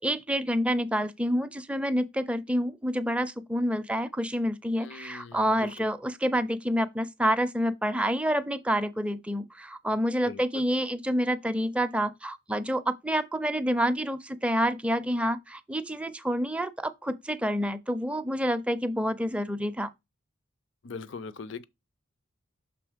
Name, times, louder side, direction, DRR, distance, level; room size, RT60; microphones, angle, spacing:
voice 1, 0.0-19.9, equal, 5° right, 0.4 m, -28 dB
voice 2, 4.8-5.7 10.2-10.6 20.8-21.6, left 4 dB, 60° left, 0.5 m, -41 dB
6.1 x 3.1 x 5.0 m
head